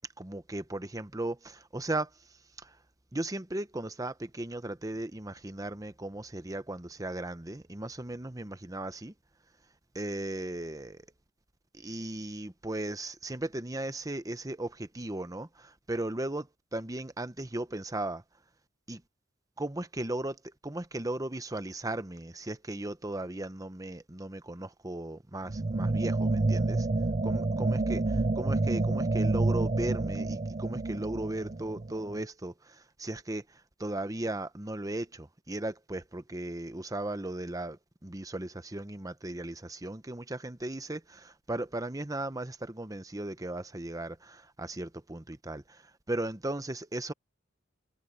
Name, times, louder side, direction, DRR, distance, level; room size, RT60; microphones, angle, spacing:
voice 1, 0.2-2.1 2.6-2.8 3.1-9.1 9.9-11.1 11.7-18.2 18.9-19.0 19.6-26.9 27.2-28.0 28.4-47.1, right 1 dB, 20° right, 1.0 m, -36 dB
sound 1, 25.5-32.2, right 2 dB, 35° right, 0.6 m, -29 dB
head